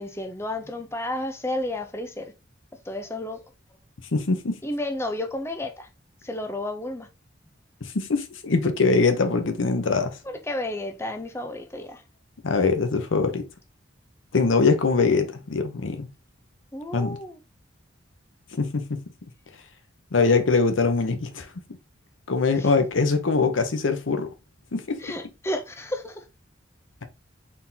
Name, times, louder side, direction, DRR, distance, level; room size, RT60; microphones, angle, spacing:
voice 1, 0.0-2.3 2.8-3.4 4.6-5.9 6.2-7.1 10.2-12.0 16.7-17.4 22.6-22.7 25.0-26.3, left 1 dB, 15° left, 0.5 m, -32 dB
voice 2, 4.1-4.6 7.8-10.2 12.4-13.5 14.3-16.1 16.9-17.2 18.5-19.0 20.1-21.5 22.3-24.3 24.7-25.0, left 4 dB, 90° left, 0.8 m, -22 dB
4.2 x 3.8 x 2.7 m
head